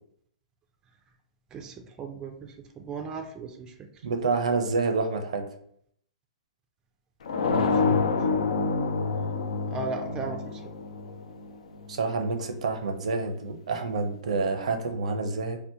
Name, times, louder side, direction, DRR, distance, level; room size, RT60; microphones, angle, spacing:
voice 1, 1.5-3.7 7.4-8.0 9.7-10.6, right 4 dB, 20° right, 4 dB, 0.3 m, -37 dB
voice 2, 4.0-5.4 11.9-15.6, right 4 dB, 75° right, 6 dB, 0.5 m, -28 dB
sound 1, 7.3-12.0, left 4 dB, 80° left, 0.4 m, -27 dB
2.7 x 2.1 x 3.6 m, 0.68 s
hypercardioid pair, 135°, 4 cm